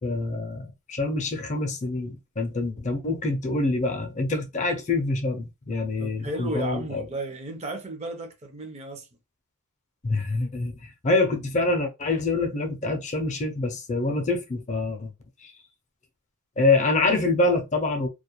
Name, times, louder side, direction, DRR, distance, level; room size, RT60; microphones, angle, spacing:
voice 1, 0.0-7.0 10.0-15.1 15.4-15.5 16.6-18.1, left 2 dB, 35° left, 0.5 m, -26 dB
voice 2, 6.0-9.2, right 2 dB, 30° right, 0.5 m, -34 dB
2.3 x 2.1 x 2.8 m
head